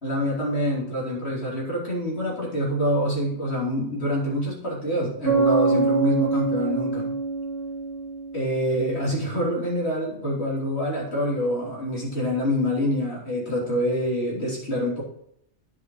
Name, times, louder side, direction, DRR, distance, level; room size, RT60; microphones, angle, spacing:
voice 1, 0.0-7.1 8.3-15.0, equal, 65° left, -4 dB, 3.5 m, -26 dB
Bass guitar, 5.3-8.9, right 3 dB, 15° left, 2.3 m, -25 dB
9.8 x 5.5 x 4.6 m, 0.70 s
omnidirectional pair, 1.2 m